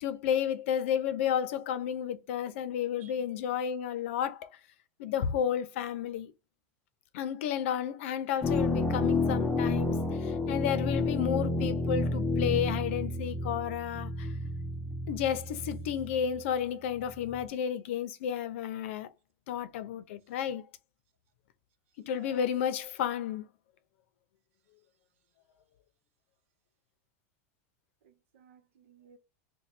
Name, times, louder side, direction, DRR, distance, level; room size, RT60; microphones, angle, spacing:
voice 1, 0.0-4.5 5.0-6.3 7.1-14.3 15.1-19.1 19.5-20.6 22.1-23.4, left 9 dB, 70° left, 0.6 m, -32 dB
sound 1, 8.4-16.4 17.0-17.4, left 2 dB, 10° left, 0.5 m, -30 dB
voice 2, 22.0-22.4 28.0-29.2, right 6 dB, 80° right, 0.8 m, -57 dB
3.1 x 2.2 x 4.2 m
supercardioid pair, 160°, 7 cm